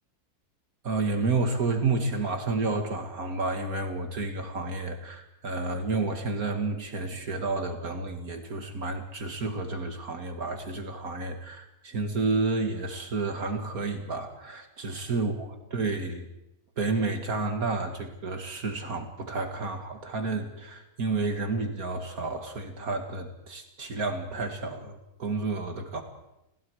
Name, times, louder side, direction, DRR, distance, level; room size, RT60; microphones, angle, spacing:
voice 1, 0.8-16.3 16.8-26.0, right 3 dB, 65° right, 5 dB, 2.4 m, -30 dB
29.5 x 21.5 x 4.8 m, 0.89 s
omnidirectional pair, 1.6 m